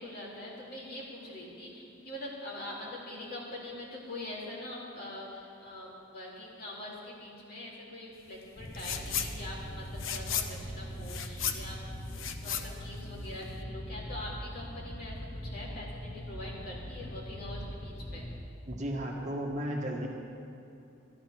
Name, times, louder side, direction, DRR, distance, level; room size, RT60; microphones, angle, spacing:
voice 1, 0.0-15.2 15.4-18.3, left 1 dB, 45° left, -6 dB, 3.3 m, -43 dB
sound 1, 8.6-18.5, equal, 25° left, 0.8 m, -41 dB
sound 2, 8.7-9.3 9.6-13.6, left 8 dB, 75° left, 0.8 m, -35 dB
voice 2, 18.7-20.1, equal, 35° right, -2 dB, 1.5 m, -34 dB
13.0 x 11.5 x 6.1 m, 2.7 s
head